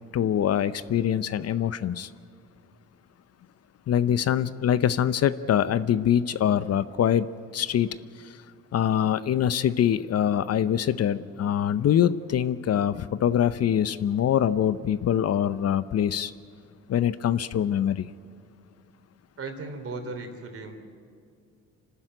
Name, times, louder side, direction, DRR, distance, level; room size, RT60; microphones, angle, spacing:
voice 1, 0.1-2.1 3.9-7.3 7.5-7.9 8.2-8.3 8.7-16.3 16.9-18.1, left 9 dB, 55° left, 15 dB, 0.7 m, -24 dB
voice 2, 19.4-20.8, right 3 dB, 50° right, 6 dB, 3.3 m, -36 dB
26.5 x 12.5 x 9.0 m, 2.3 s
cardioid pair, 90°, 30 cm